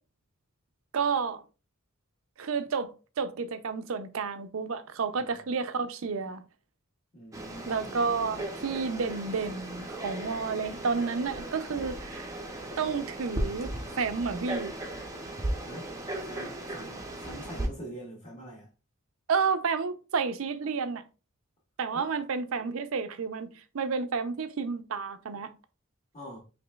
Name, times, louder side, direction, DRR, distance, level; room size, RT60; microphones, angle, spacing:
voice 1, 0.9-1.4 2.4-6.4 7.7-12.3 12.8-13.7 14.0-14.7 19.3-21.0 21.8-23.5 23.7-25.5, right 5 dB, 70° right, 0.5 m, -31 dB
voice 2, 7.1-7.9 15.6-15.9 16.2-18.7 21.9-22.1 26.1-26.4, right 1 dB, 30° left, 1.3 m, -44 dB
Frog, 7.3-17.7, right 1 dB, 15° right, 0.5 m, -37 dB
5.0 x 3.2 x 2.3 m
head